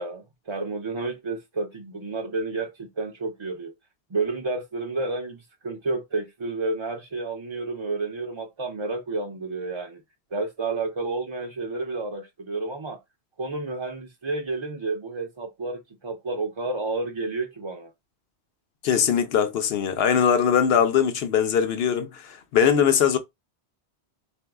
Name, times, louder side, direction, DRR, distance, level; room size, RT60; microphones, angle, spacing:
voice 1, 0.0-3.7 4.1-10.0 10.3-13.0 13.4-17.9, right 3 dB, 40° right, 0.4 m, -30 dB
voice 2, 18.8-23.2, left 8 dB, 65° left, 0.9 m, -21 dB
3.9 x 2.5 x 3.4 m
omnidirectional pair, 1.1 m